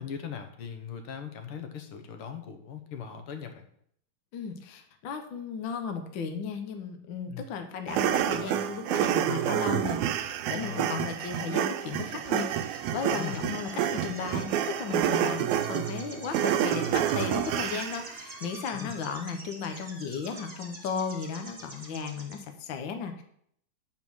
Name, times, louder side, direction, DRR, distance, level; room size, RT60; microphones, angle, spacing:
voice 1, 0.0-3.6 7.3-7.4 10.6-10.9 13.1-13.4 18.7-18.9, left 8 dB, 65° left, 6 dB, 1.5 m, -39 dB
voice 2, 4.3-23.2, left 6 dB, 85° left, 6 dB, 1.0 m, -35 dB
sound 1, 7.9-18.1, right 10 dB, 80° right, 1.9 m, -28 dB
sound 2, 8.1-22.4, right 2 dB, 25° right, 0.8 m, -48 dB
9.2 x 4.4 x 6.2 m, 0.68 s
omnidirectional pair, 3.3 m